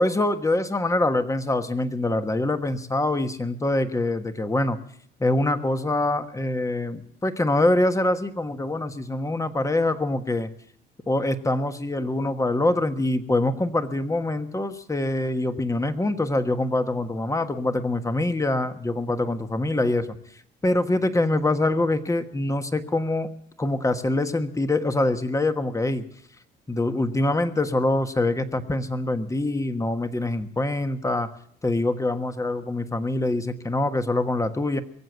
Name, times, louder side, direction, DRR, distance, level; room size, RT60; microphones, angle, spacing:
voice 1, 0.0-4.8 5.2-10.5 11.1-20.2 20.6-23.3 23.6-26.0 26.7-31.3 31.6-34.8, left 2 dB, 15° left, 9 dB, 1.3 m, -24 dB
23.0 x 7.9 x 7.9 m, 0.66 s
cardioid pair, 90°, 20 cm